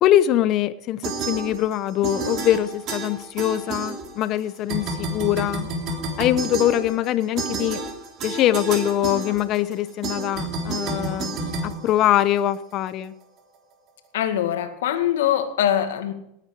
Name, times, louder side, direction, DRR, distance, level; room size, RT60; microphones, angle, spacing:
voice 1, 0.0-5.7 6.2-7.8 8.2-11.4 11.6-13.1, left 12 dB, 45° left, 14 dB, 0.9 m, -23 dB
sound 1, 1.0-4.4 4.7-12.6, right 3 dB, 45° right, 3.2 m, -30 dB
voice 2, 14.1-16.1, left 10 dB, 80° left, 6 dB, 2.0 m, -23 dB
18.0 x 9.0 x 4.8 m, 0.78 s
supercardioid pair, 125°, 0 cm